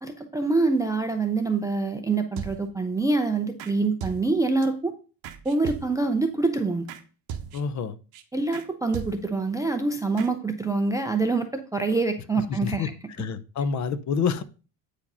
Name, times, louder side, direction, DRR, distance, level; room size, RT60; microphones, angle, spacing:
voice 1, 0.0-4.9 5.4-6.9 8.3-12.9, right 3 dB, 10° right, 6 dB, 0.3 m, -25 dB
sound 1, 2.4-2.9 3.6-3.7 4.0-4.7 5.2-6.2 6.9-7.0 7.3-7.8 8.1-8.2 8.5-8.7 8.9-9.5 10.2-10.3, right 7 dB, 60° right, 1.1 m, -38 dB
voice 2, 7.5-8.0 12.5-12.9 13.2-14.4, left 6 dB, 45° left, 14 dB, 0.7 m, -27 dB
8.8 x 4.9 x 5.4 m, 0.35 s
cardioid pair, 170°, 42 cm